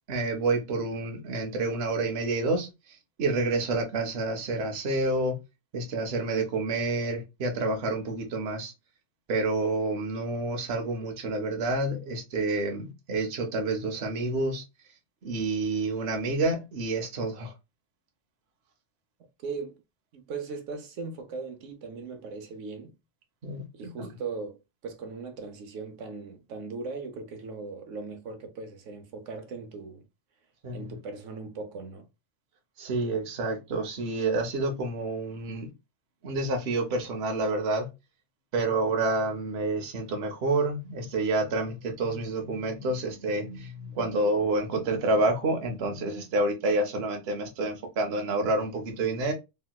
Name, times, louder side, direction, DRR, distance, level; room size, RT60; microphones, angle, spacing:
voice 1, 0.1-2.7 3.2-5.4 5.7-8.7 9.3-14.6 15.2-17.5 23.4-24.1 30.6-30.9 32.8-35.7 36.2-37.9 38.5-49.3, right 2 dB, 60° right, 1.0 m, -28 dB
voice 2, 19.4-19.7 20.1-22.9 23.7-30.0 30.7-32.1, right 4 dB, 85° right, 1.1 m, -38 dB
3.2 x 2.9 x 2.2 m
omnidirectional pair, 1.2 m